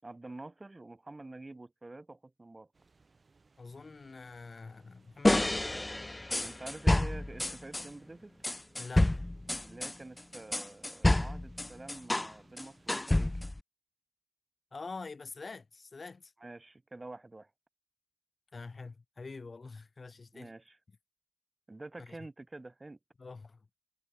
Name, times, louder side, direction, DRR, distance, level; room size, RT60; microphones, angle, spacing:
voice 1, 0.0-2.7 6.4-8.3 9.6-13.4 16.4-17.5 20.3-20.8 21.7-23.0, right 2 dB, 45° right, 6.4 m, -48 dB
sound 1, 2.7-13.4, right 3 dB, 85° right, 7.5 m, -67 dB
voice 2, 3.6-5.6 8.8-9.1 14.7-16.3 18.5-20.5 22.0-22.2 23.2-23.7, left 4 dB, 90° left, 2.1 m, -46 dB
sound 2, 5.2-7.9 8.4-12.3 12.6-13.6, left 1 dB, 30° left, 0.5 m, -29 dB
wide cardioid pair, 55°, 0 cm